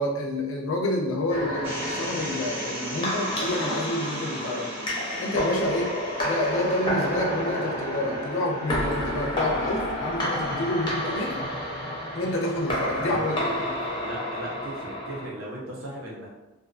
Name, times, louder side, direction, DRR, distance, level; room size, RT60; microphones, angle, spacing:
voice 1, 0.0-4.7 5.2-5.9 6.2-11.4 12.1-13.5, left 1 dB, 70° left, 0 dB, 0.5 m, -28 dB
sound 1, 1.3-15.3, equal, 25° left, 0.6 m, -30 dB
sound 2, 1.6-13.8, right 1 dB, 10° right, 0.6 m, -40 dB
voice 2, 14.0-16.3, equal, 75° right, -4 dB, 0.7 m, -36 dB
2.5 x 2.4 x 2.4 m, 1.0 s
head